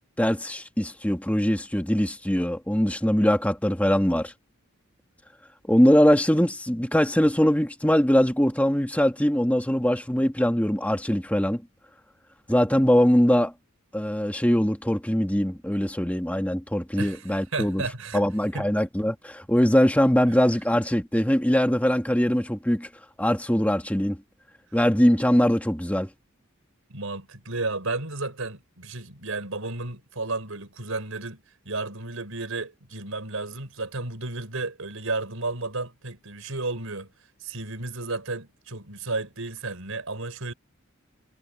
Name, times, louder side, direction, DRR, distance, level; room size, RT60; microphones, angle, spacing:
voice 1, 0.2-4.3 5.7-11.6 12.5-13.5 13.9-17.8 18.1-22.9 23.2-24.2 24.7-26.1, equal, 5° left, 1.9 m, -22 dB
voice 2, 17.0-18.3 18.5-18.7 20.3-20.4 26.9-37.1 37.4-40.5, right 3 dB, 80° right, 4.4 m, -33 dB
head